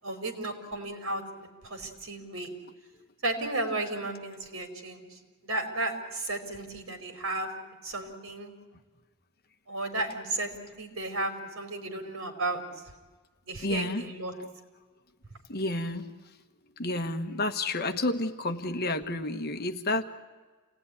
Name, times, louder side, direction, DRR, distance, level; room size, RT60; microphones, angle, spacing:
voice 1, 0.0-2.5 3.2-7.5 7.8-8.5 9.7-10.5 10.8-12.6 13.5-14.3, right 2 dB, 65° right, 5 dB, 4.7 m, -34 dB
voice 2, 13.6-14.0 15.5-16.1 16.8-20.0, left 2 dB, 45° left, 6 dB, 1.4 m, -30 dB
28.5 x 19.0 x 9.9 m, 1.3 s
head